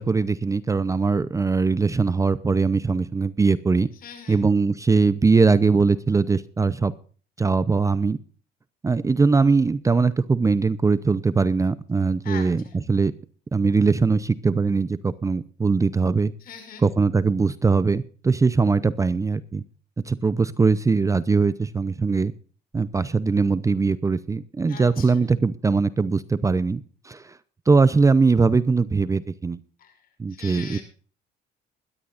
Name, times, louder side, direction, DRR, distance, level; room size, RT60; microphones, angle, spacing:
voice 1, 0.0-3.9 4.3-6.9 7.4-8.2 8.8-13.1 13.5-16.3 16.8-19.6 20.1-22.3 22.7-27.4 27.7-29.6 30.2-30.8, right 4 dB, 20° right, 15 dB, 0.6 m, -21 dB
voice 2, 3.9-4.4 12.2-12.8 16.4-16.8 24.7-25.2 29.8-30.8, left 7 dB, 60° left, 7 dB, 5.7 m, -41 dB
21.0 x 13.0 x 2.5 m, 0.40 s
cardioid pair, 110°, 17 cm